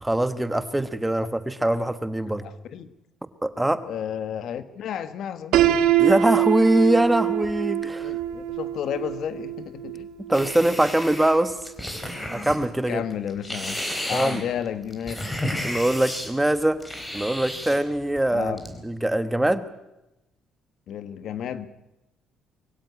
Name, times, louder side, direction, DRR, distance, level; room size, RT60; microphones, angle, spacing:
voice 1, 0.0-2.4 3.4-3.8 6.0-8.1 10.3-11.6 12.3-13.0 14.1-14.4 15.6-16.8 17.1-18.6 18.8-19.7, right 1 dB, 5° right, 12 dB, 1.1 m, -22 dB
voice 2, 2.3-2.9 3.8-5.6 8.0-10.1 12.9-13.8 14.1-15.3 18.3-18.6 20.9-21.7, left 9 dB, 60° left, 12 dB, 1.4 m, -32 dB
Piano, 5.5-11.4, right 11 dB, 85° right, 2.0 m, -24 dB
sound 1, 10.3-12.6 13.1-16.3 16.8-17.8 18.2-18.8, left 1 dB, 10° left, 3.9 m, -32 dB
23.0 x 16.5 x 9.7 m, 0.94 s
cardioid pair, 135°, 0 cm